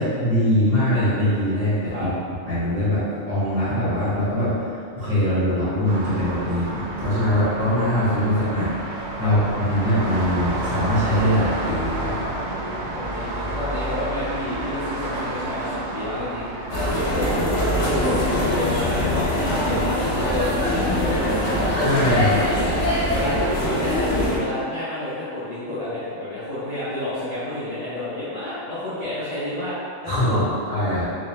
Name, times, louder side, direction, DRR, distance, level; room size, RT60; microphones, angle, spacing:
voice 1, 0.0-2.1 2.5-3.0 3.3-4.5 4.9-12.2 21.7-22.4 30.1-31.0, left 1 dB, 35° right, -14 dB, 1.7 m, -22 dB
sound 1, 5.8-24.5, right 1 dB, 70° right, 0.4 m, -32 dB
voice 2, 12.9-16.5 17.1-21.2 22.3-29.7 30.0-30.4, left 1 dB, 35° left, -14 dB, 0.7 m, -30 dB
sound 2, 16.7-24.4, left 1 dB, 65° left, 1.2 m, -23 dB
3.8 x 2.7 x 3.1 m, 2.3 s
omnidirectional pair, 1.4 m